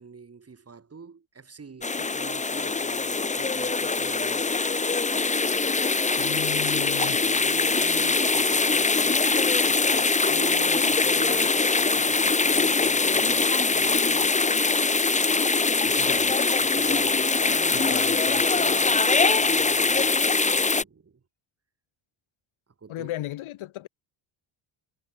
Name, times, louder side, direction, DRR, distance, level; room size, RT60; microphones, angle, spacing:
voice 1, 0.0-4.6 6.7-14.5 16.6-21.2 22.8-23.1, right 5 dB, 30° right, 4.3 m, -45 dB
sound 1, 1.8-20.8, left 4 dB, 15° left, 0.9 m, -23 dB
voice 2, 6.2-7.2 15.8-16.4 17.7-18.4 22.9-23.9, left 15 dB, 80° left, 1.7 m, -36 dB
cardioid pair, 115°, 48 cm